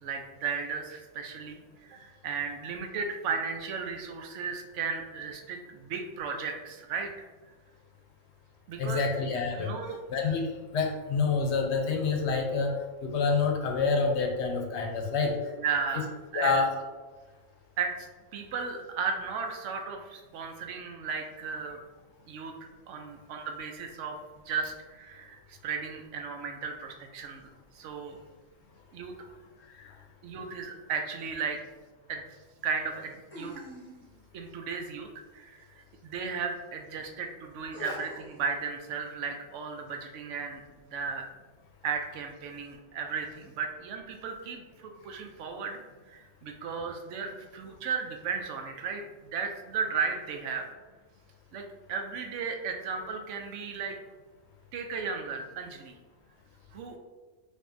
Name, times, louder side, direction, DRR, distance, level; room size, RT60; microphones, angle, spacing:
voice 1, 0.0-7.1 8.7-9.0 9.5-10.3 15.5-16.6 17.8-21.8 22.3-22.5 22.9-24.2 24.5-27.5 27.7-28.2 28.9-29.1 30.2-31.6 32.1-32.3 32.6-33.5 34.3-41.3 41.8-45.8 46.1-50.7 51.5-54.0 54.7-55.9 56.7-57.0, right 5 dB, 75° right, 4 dB, 0.9 m, -35 dB
voice 2, 8.8-9.7 10.1-15.5 16.3-16.7 29.7-30.0 37.8-38.0, left 4 dB, 65° left, 2 dB, 0.8 m, -28 dB
sound 1, 31.2-31.3 33.3-34.3 36.1-36.2 37.7-38.4, left 1 dB, 10° left, 0.8 m, -44 dB
5.1 x 2.5 x 2.6 m, 1.3 s
omnidirectional pair, 1.3 m